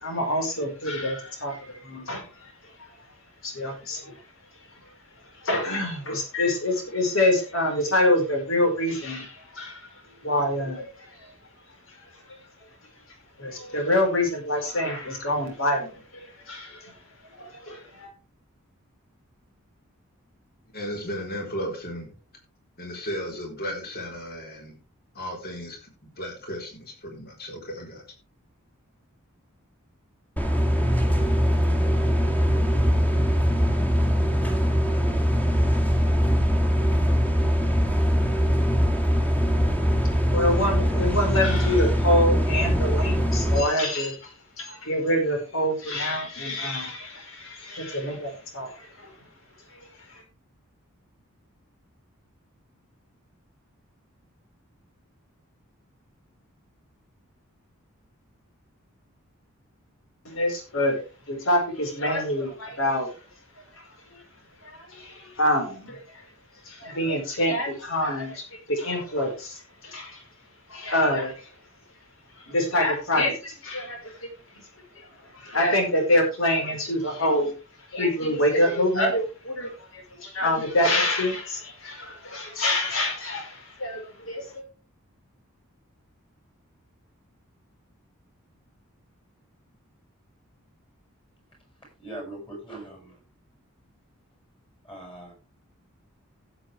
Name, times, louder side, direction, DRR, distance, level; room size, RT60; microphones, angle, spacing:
voice 1, 0.0-2.3 3.4-4.2 5.4-9.8 10.2-10.9 13.4-16.9 17.4-18.1 40.3-49.1 50.1-50.2 60.2-61.0 61.3-63.1 64.6-66.0 66.7-70.2 70.7-71.3 72.5-74.0 75.3-77.5 77.9-84.6, left 1 dB, 65° left, 3 dB, 5.0 m, -26 dB
voice 2, 20.7-22.1 22.8-24.8 25.1-28.0, equal, 45° left, 1 dB, 4.4 m, -35 dB
sound 1, 30.4-43.6, equal, 5° left, 2.0 m, -22 dB
voice 3, 92.0-93.2 94.8-95.3, right 1 dB, 25° left, 1 dB, 7.0 m, -40 dB
16.0 x 8.0 x 3.5 m, 0.31 s
head